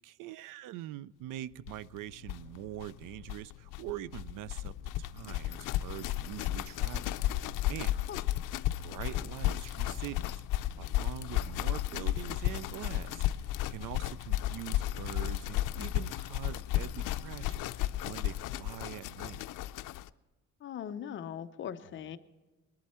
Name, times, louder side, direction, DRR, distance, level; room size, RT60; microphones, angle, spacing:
voice 1, 0.0-8.1 8.8-19.4, right 14 dB, 90° right, 20 dB, 0.5 m, -44 dB
sound 1, 1.7-1.8 2.0-2.1 2.2-20.1, left 14 dB, 85° left, 0.5 m, -33 dB
voice 2, 20.6-22.2, left 9 dB, 40° left, 9 dB, 0.6 m, -40 dB
21.0 x 11.5 x 4.3 m, 1.2 s
cardioid pair, 175°, 31 cm